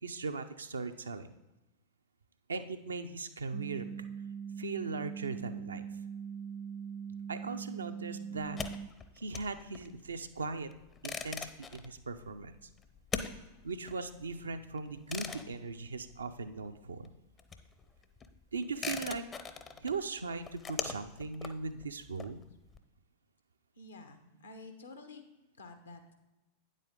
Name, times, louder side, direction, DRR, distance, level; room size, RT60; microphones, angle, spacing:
voice 1, 0.0-1.3 2.5-4.1 4.6-5.8 7.3-8.6 9.2-10.7 11.0-12.7 13.6-17.1 18.5-19.2 19.8-22.4, right 4 dB, 75° right, 8 dB, 0.5 m, -39 dB
sound 1, 3.5-8.9, right 7 dB, 25° right, 0.3 m, -42 dB
sound 2, 8.4-16.7 17.0-22.8, left 5 dB, 20° left, 0.6 m, -43 dB
voice 2, 23.8-25.2 25.6-26.1, left 3 dB, 75° left, 6 dB, 1.1 m, -50 dB
9.1 x 7.5 x 3.7 m, 1.0 s
figure-of-eight pair, 90°, 0 cm